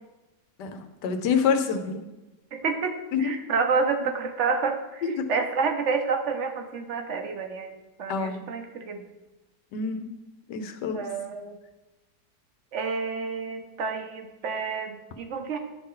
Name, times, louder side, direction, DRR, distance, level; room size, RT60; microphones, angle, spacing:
voice 1, 0.6-2.0 3.1-3.3 5.0-5.2 8.1-8.4 9.7-10.1 10.5-11.0, left 6 dB, 80° left, 7 dB, 1.3 m, -27 dB
voice 2, 2.5-7.7 8.0-9.0 10.9-11.6 12.7-15.6, right 5 dB, 55° right, 5 dB, 1.0 m, -29 dB
11.0 x 4.2 x 3.8 m, 1.0 s
omnidirectional pair, 1.8 m